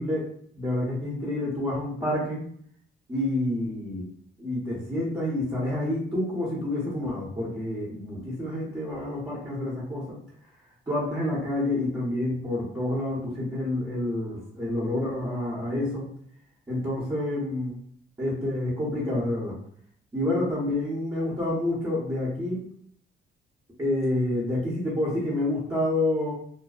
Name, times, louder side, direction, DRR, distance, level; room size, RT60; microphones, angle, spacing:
voice 1, 0.0-2.4 3.1-4.1 4.4-10.2 10.9-16.1 16.7-17.7 18.2-19.6 20.1-22.6 23.8-26.3, left 1 dB, 20° right, -8 dB, 0.9 m, -28 dB
2.6 x 2.2 x 2.4 m, 0.62 s
cardioid pair, 90°, 20 cm